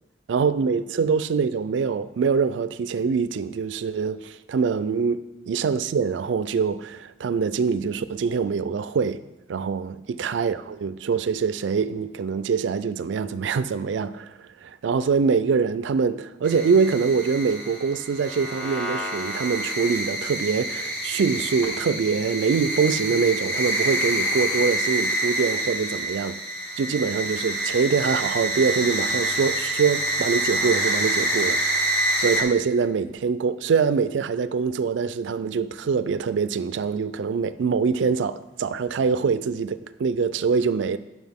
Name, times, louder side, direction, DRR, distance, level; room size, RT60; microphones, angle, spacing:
voice 1, 0.3-9.2 9.5-14.3 14.6-26.4 26.8-41.0, right 5 dB, 90° right, 0.4 m, -24 dB
sound 1, 16.4-32.4, right 1 dB, 10° left, 1.5 m, -27 dB
9.4 x 6.0 x 3.5 m
head